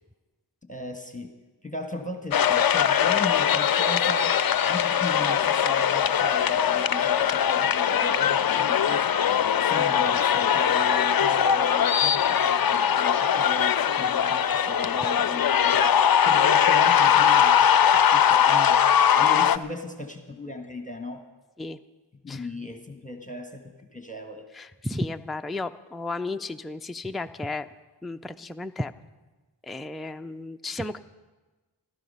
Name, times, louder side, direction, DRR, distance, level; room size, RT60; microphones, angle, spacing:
voice 1, 0.7-1.3 1.6-4.4 4.7-9.1 9.6-18.8 19.2-21.2 22.2-24.5, left 1 dB, 15° left, 5 dB, 1.5 m, -37 dB
sound 1, 2.3-19.6, left 8 dB, 50° left, 0.5 m, -21 dB
voice 2, 24.5-27.7 28.0-28.9 29.6-31.0, left 2 dB, ahead, 7 dB, 0.5 m, -33 dB
17.0 x 13.0 x 5.6 m, 1.2 s
cardioid pair, 40°, 45 cm